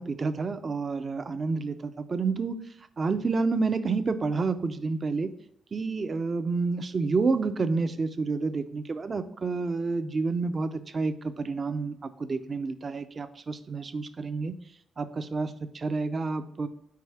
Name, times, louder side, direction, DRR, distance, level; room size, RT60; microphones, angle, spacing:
voice 1, 0.0-2.6 3.0-5.3 5.7-14.5 15.0-16.7, right 4 dB, 30° right, 12 dB, 0.4 m, -29 dB
4.7 x 4.7 x 5.6 m, 0.78 s
wide cardioid pair, 160°, 0 cm